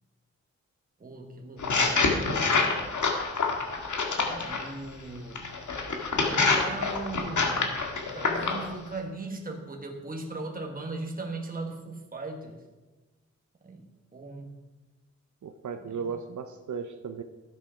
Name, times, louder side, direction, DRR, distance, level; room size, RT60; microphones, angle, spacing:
voice 1, 1.0-2.5 4.2-5.5 6.1-7.8 8.1-12.6 13.6-13.8 14.1-14.5 15.8-15.9, right 2 dB, 30° right, 1 dB, 1.3 m, -38 dB
sound 1, 1.6-4.7 5.4-8.7, left 4 dB, 85° left, 1.7 m, -26 dB
voice 2, 15.4-17.2, right 6 dB, 85° right, 7 dB, 0.7 m, -36 dB
12.0 x 7.5 x 5.7 m, 1.2 s
wide cardioid pair, 110°, 29 cm